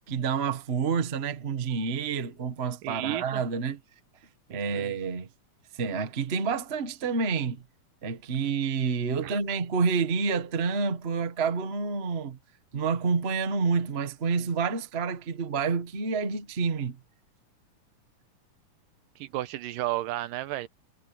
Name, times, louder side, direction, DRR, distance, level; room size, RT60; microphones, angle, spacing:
voice 1, 0.1-3.8 4.5-5.3 5.7-7.6 8.0-12.4 12.7-17.0, right 5 dB, 55° right, 0.6 m, -28 dB
voice 2, 2.8-3.4 4.5-5.0 9.2-9.3 19.2-20.7, right 15 dB, 80° right, 2.4 m, -33 dB
omnidirectional pair, 3.9 m